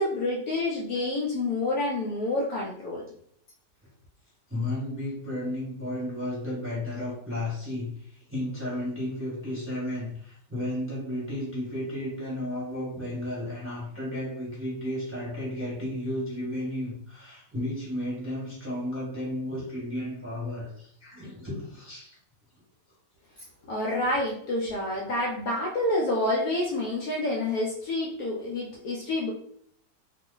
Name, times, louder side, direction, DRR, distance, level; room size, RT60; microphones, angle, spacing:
voice 1, 0.0-3.0 23.7-29.3, left 1 dB, 70° left, -2 dB, 1.0 m, -28 dB
voice 2, 4.5-22.2, left 1 dB, 10° right, -6 dB, 0.9 m, -33 dB
2.9 x 2.0 x 3.7 m, 0.65 s
omnidirectional pair, 1.9 m